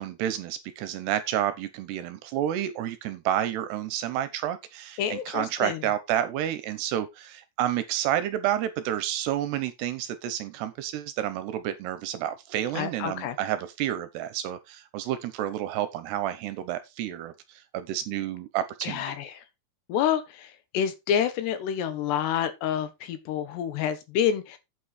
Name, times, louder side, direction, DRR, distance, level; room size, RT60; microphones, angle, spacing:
voice 1, 0.0-19.2, right 11 dB, 75° right, 2.7 m, -30 dB
voice 2, 5.0-5.8 12.8-13.4 18.8-19.3 19.9-20.5 20.7-24.6, left 9 dB, 70° left, 3.2 m, -28 dB
8.7 x 8.1 x 4.2 m
omnidirectional pair, 5.3 m